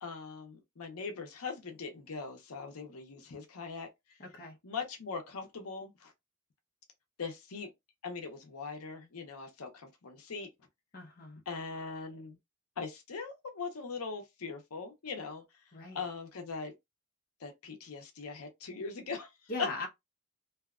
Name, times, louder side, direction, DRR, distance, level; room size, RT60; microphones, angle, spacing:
voice 1, 0.0-3.9 4.6-6.1 7.2-7.7 8.0-10.5 11.5-12.4 12.8-15.4 15.9-16.7 17.4-19.3 19.6-19.9, left 5 dB, 85° left, 0.7 m, -40 dB
voice 2, 4.2-4.6 10.9-11.4 15.7-16.0 19.5-19.9, left 2 dB, 40° left, 0.7 m, -40 dB
2.7 x 2.2 x 2.3 m
head